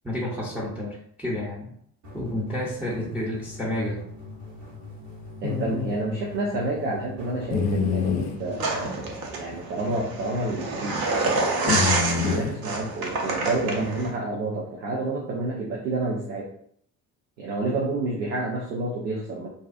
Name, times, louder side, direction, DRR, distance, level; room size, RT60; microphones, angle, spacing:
voice 1, 0.0-1.7 2.1-4.0, left 1 dB, 5° right, -4 dB, 0.7 m, -30 dB
sound 1, 2.0-8.9, left 3 dB, 70° right, 1.2 m, -42 dB
sound 2, 5.4-6.0 7.5-8.4 9.5-9.6 9.9-10.0 11.7-12.6 13.8-14.1, left 6 dB, 40° left, 0.4 m, -26 dB
voice 2, 5.4-11.1 11.6-16.5 17.4-19.5, right 2 dB, 85° right, -3 dB, 0.6 m, -29 dB
sound 3, 8.6-14.1, right 3 dB, 50° right, 0.7 m, -27 dB
2.6 x 2.3 x 2.4 m, 0.65 s
figure-of-eight pair, 45°, 49 cm